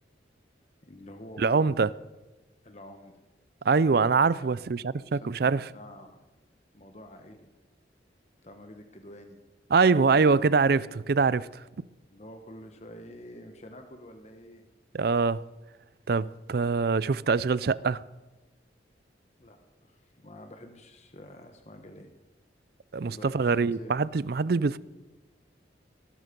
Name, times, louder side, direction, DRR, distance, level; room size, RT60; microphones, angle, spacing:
voice 1, 0.8-1.8 2.6-3.1 3.8-4.1 4.4-4.5 5.1-6.2 6.7-7.5 8.4-9.4 9.8-10.5 12.1-14.6 19.4-22.1 23.1-24.0, left 1 dB, 35° left, 1.3 m, -47 dB
voice 2, 1.4-1.9 3.6-5.7 9.7-11.6 14.9-15.4 16.1-18.0 22.9-24.8, right 4 dB, 55° right, 0.4 m, -24 dB
19.5 x 12.5 x 5.3 m
head